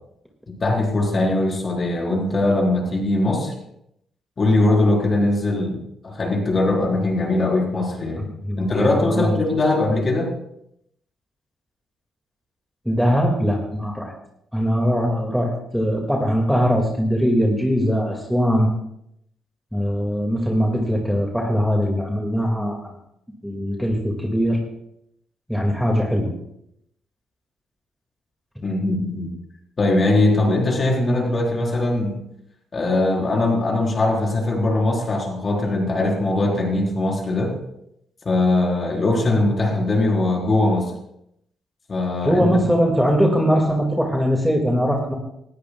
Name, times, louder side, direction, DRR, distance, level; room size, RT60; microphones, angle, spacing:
voice 1, 0.5-3.5 4.4-5.8 6.0-8.3 8.6-10.3 28.6-29.3 29.8-32.1 32.7-37.5 38.2-40.8 41.9-42.6, left 2 dB, 35° left, -1 dB, 4.3 m, -21 dB
voice 2, 8.2-9.4 12.9-14.1 14.5-18.7 19.7-22.9 23.4-24.6 25.5-26.3 42.2-45.1, equal, ahead, 0 dB, 2.1 m, -21 dB
18.5 x 13.0 x 2.3 m, 0.77 s
cardioid pair, 90°, 0 cm